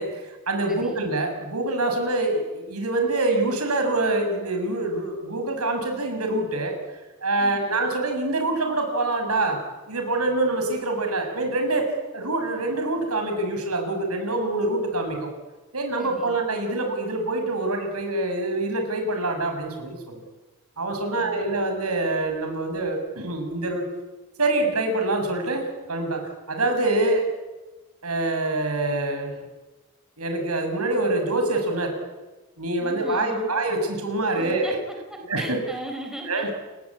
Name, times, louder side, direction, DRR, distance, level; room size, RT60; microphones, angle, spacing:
voice 1, 0.0-6.7 7.2-9.6 9.9-15.3 15.7-20.2 20.8-23.8 24.4-26.2 26.5-27.2 28.0-29.3 30.2-31.9 32.6-34.7 35.3-35.6 36.3-36.5, right 2 dB, 85° right, 4 dB, 6.8 m, -25 dB
voice 2, 0.7-1.0 7.4-7.7 16.0-16.3 21.0-21.3 32.8-33.5 34.3-36.7, right 1 dB, ahead, 2 dB, 4.1 m, -38 dB
30.0 x 19.0 x 8.6 m, 1.2 s
head